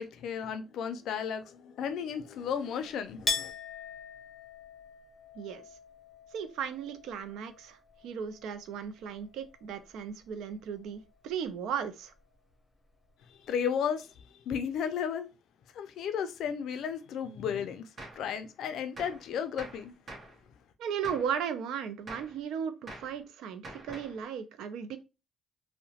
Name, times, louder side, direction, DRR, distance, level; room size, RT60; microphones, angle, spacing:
voice 1, 0.0-3.5 13.3-14.1 14.5-15.3 15.7-17.9 18.2-19.9, left 7 dB, 80° left, 0.4 m, -34 dB
Chink clink, 3.3-8.8 9.1-9.9, left 4 dB, 20° left, 0.7 m, -40 dB
voice 2, 6.3-7.8 8.0-12.1 20.8-25.0, right 7 dB, 85° right, 0.4 m, -36 dB
Gunshot gunfire, 18.0-18.3 19.0-19.3 19.6-20.4 21.0-21.4 22.1-22.4 22.9-23.2 23.6-24.2, right 2 dB, 40° right, 0.9 m, -45 dB
2.8 x 2.0 x 2.8 m
cardioid pair, 90°, 0 cm